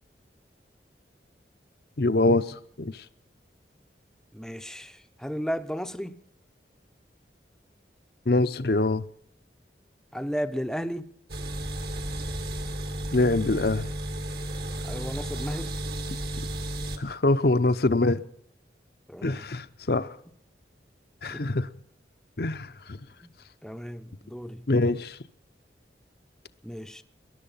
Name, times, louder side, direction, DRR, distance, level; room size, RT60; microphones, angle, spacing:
voice 1, 2.0-3.0 8.3-9.0 13.1-13.9 17.0-18.2 19.2-20.1 21.2-21.7 22.4-23.0 24.7-25.2, left 2 dB, 60° left, 0.8 m, -24 dB
voice 2, 4.3-6.2 10.1-11.1 14.8-15.7 19.1-19.5 21.3-21.5 23.2-23.3 23.6-24.7 26.6-27.0, equal, 5° left, 0.7 m, -34 dB
sound 1, 11.3-17.0, right 1 dB, 60° right, 2.0 m, -33 dB
21.0 x 11.5 x 5.7 m
head